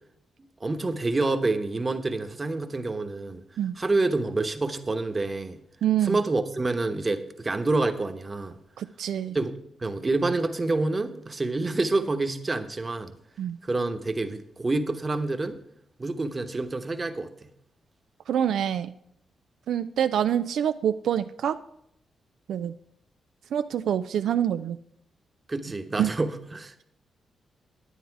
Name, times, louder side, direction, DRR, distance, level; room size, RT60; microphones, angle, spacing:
voice 1, 0.6-3.4 3.8-5.6 6.0-8.6 9.3-9.5 9.8-13.1 13.6-15.6 16.0-17.5 25.5-26.8, right 2 dB, 30° right, 8 dB, 1.1 m, -27 dB
voice 2, 5.8-6.2 8.8-9.4 13.4-13.6 18.3-18.9 19.7-21.6 22.5-22.7 23.5-24.8 26.0-26.1, right 10 dB, 80° right, 10 dB, 0.4 m, -26 dB
10.0 x 9.4 x 4.7 m, 0.73 s
cardioid pair, 80°, 0 cm